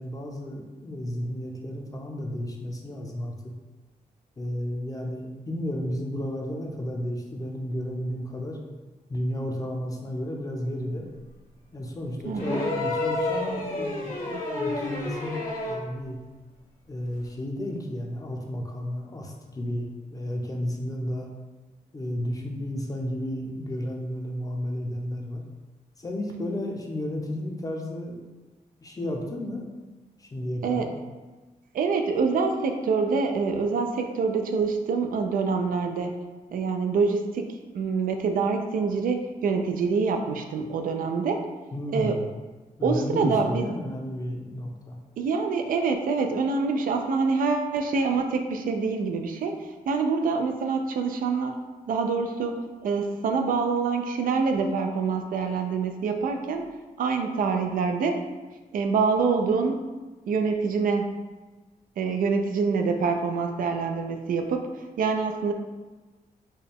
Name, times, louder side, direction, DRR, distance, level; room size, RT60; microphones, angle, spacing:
voice 1, 0.0-3.4 4.4-8.6 9.1-11.1 11.7-16.2 16.9-21.3 21.9-25.4 26.0-28.2 28.8-29.7 30.2-30.9 41.7-42.3 42.8-45.0, equal, 25° left, 1 dB, 0.6 m, -32 dB
voice 2, 12.3-12.6 14.3-14.4 30.6-30.9 31.7-36.1 36.5-41.4 41.9-42.2 42.8-43.7 45.2-49.6 49.9-51.6 51.9-52.6 52.8-56.6 57.0-58.2 58.7-59.8 60.3-61.1 62.0-64.7 65.0-65.5, right 4 dB, 75° right, 5 dB, 0.4 m, -26 dB
sound 1, 12.4-15.9 17.2-17.3, left 2 dB, 85° left, 1.5 m, -29 dB
4.2 x 2.2 x 3.4 m, 1.2 s
cardioid pair, 110°, 14 cm